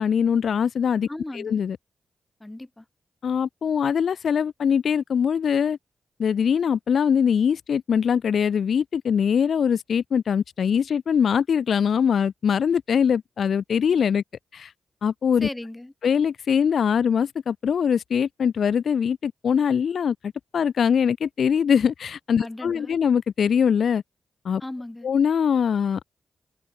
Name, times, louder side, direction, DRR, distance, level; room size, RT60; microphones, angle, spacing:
voice 1, 0.0-1.1 1.3-1.8 3.2-5.8 6.2-14.2 14.5-14.7 15.0-15.5 16.0-24.0 24.4-24.6 25.0-26.0, left 7 dB, 70° left, 0.5 m, -22 dB
voice 2, 1.1-1.6 2.4-2.8 15.4-15.9 22.4-23.0 24.6-25.1, left 1 dB, 20° left, 3.1 m, -37 dB
supercardioid pair, 45°, 0 cm